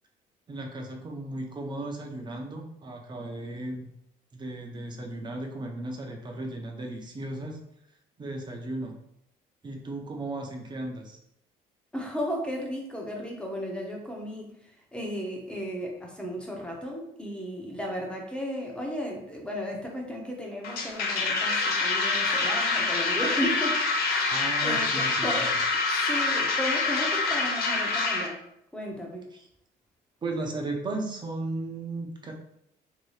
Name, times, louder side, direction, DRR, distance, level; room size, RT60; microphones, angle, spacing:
voice 1, 0.5-3.9 4.3-7.6 8.2-9.0 9.6-11.2 24.3-25.5 29.3-29.5 30.2-32.3, right 2 dB, 25° right, 1 dB, 0.7 m, -35 dB
voice 2, 11.9-25.5 25.9-28.4 28.7-29.3, equal, 5° left, 0 dB, 0.8 m, -35 dB
sound 1, 20.6-28.3, left 3 dB, 65° left, 0.7 m, -26 dB
2.9 x 2.8 x 3.2 m, 0.76 s
cardioid pair, 110°, 17 cm